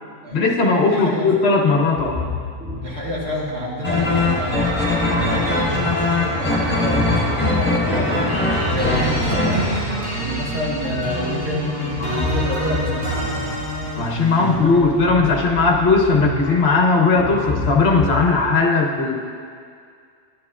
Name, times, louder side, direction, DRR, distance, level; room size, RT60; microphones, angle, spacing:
voice 1, 0.3-2.2 14.0-19.1, left 3 dB, 55° left, 0 dB, 1.1 m, -17 dB
voice 2, 0.9-1.3 2.8-4.7 5.1-8.4 8.6-9.8 10.2-11.7 12.0-13.1 14.2-15.1, equal, 55° right, -5 dB, 1.8 m, -28 dB
sound 1, 2.0-18.2, left 2 dB, 10° right, 2.2 m, -30 dB
sound 2, 3.8-9.8, left 2 dB, 10° left, 1.3 m, -21 dB
sound 3, 8.0-14.8, right 1 dB, 80° right, 1.9 m, -28 dB
11.5 x 8.9 x 2.4 m, 2.2 s
omnidirectional pair, 1.4 m